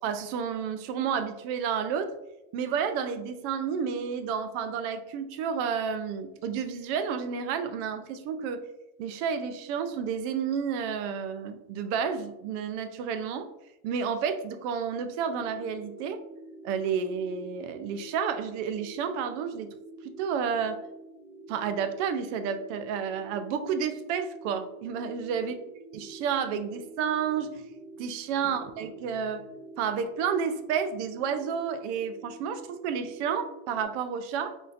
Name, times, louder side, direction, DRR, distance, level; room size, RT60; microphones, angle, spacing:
voice 1, 0.0-2.1 2.5-8.7 9.0-13.5 13.8-16.2 16.6-19.7 20.0-20.8 21.5-25.5 25.9-27.6 28.0-29.5 29.8-34.5, right 7 dB, 70° right, 9 dB, 0.5 m, -31 dB
sound 1, 15.0-33.8, right 2 dB, 25° left, 1.2 m, -48 dB
3.6 x 2.7 x 2.5 m, 0.91 s
cardioid pair, 150°, 36 cm